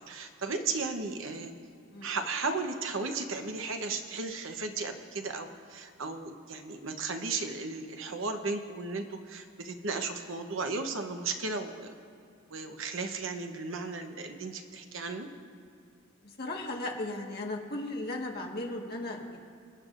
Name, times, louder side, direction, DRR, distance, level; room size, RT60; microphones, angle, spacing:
voice 1, 0.1-1.5 2.0-11.9 12.5-15.3, right 3 dB, 70° right, 5 dB, 0.9 m, -35 dB
voice 2, 16.4-19.4, left 2 dB, 45° left, 0 dB, 1.5 m, -36 dB
26.0 x 9.6 x 2.5 m, 2.6 s
head